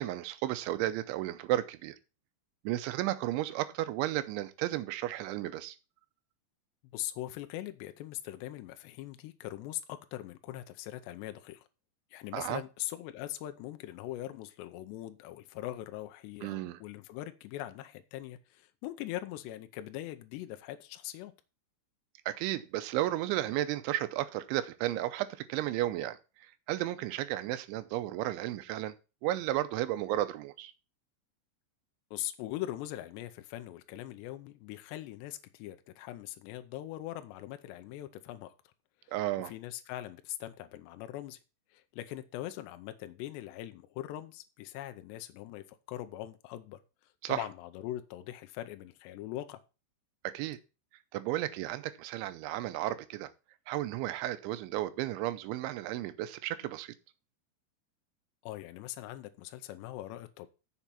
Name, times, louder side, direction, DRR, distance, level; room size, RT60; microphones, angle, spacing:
voice 1, 0.0-2.0 2.6-5.8 12.3-12.6 16.4-16.8 22.3-26.2 26.7-28.9 29.2-30.7 39.1-39.5 47.2-47.4 50.2-50.6 51.1-53.3 53.7-56.9, right 14 dB, 85° right, 3.1 m, -33 dB
voice 2, 6.9-11.6 12.1-21.3 32.1-38.5 39.0-39.2 39.4-41.4 41.7-49.6 58.4-60.5, left 14 dB, 80° left, 2.7 m, -41 dB
7.3 x 6.8 x 5.7 m
omnidirectional pair, 5.4 m